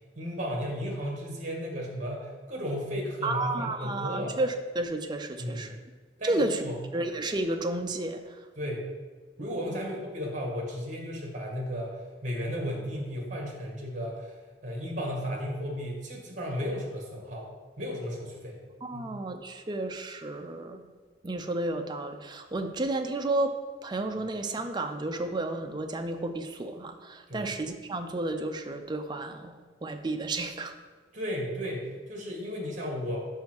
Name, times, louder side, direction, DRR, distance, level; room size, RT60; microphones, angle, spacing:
voice 1, 0.1-4.4 5.4-5.7 6.2-6.8 8.6-8.9 9.4-11.9 12.2-14.4 14.6-17.5 17.8-18.6 18.9-19.1 27.3-27.5 31.1-33.3, equal, 40° right, 0 dB, 1.5 m, -34 dB
voice 2, 3.2-5.8 6.2-6.6 6.9-8.5 9.4-9.8 18.8-20.8 21.2-23.5 23.8-30.7, right 2 dB, 25° right, 6 dB, 0.4 m, -32 dB
5.6 x 5.2 x 4.5 m, 1.4 s
head